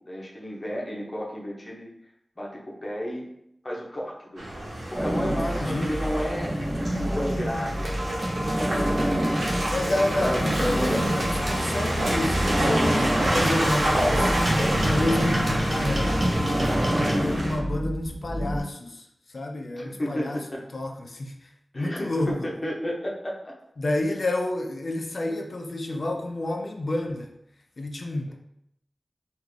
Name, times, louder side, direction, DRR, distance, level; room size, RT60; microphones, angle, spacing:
voice 1, 0.1-1.9 2.4-3.3 3.6-4.5 4.9-6.5 7.1-8.3 9.9-11.2 16.9-17.3 19.8-20.6 21.7-23.6, equal, 35° left, -3 dB, 0.9 m, -32 dB
Car passing by / Engine, 4.4-17.6, right 1 dB, 90° right, 1.0 m, -28 dB
sound 1, 4.9-18.6, equal, 25° right, 1.1 m, -29 dB
voice 2, 5.2-6.0 9.7-14.6 14.8-16.3 17.1-19.1 19.3-20.4 20.7-22.5 23.8-27.3 27.8-28.3, left 1 dB, 60° left, 3 dB, 0.5 m, -29 dB
sound 2, 7.8-17.1, right 1 dB, 55° right, 0.8 m, -30 dB
3.5 x 2.5 x 3.2 m, 0.76 s
wide cardioid pair, 75°, 0 cm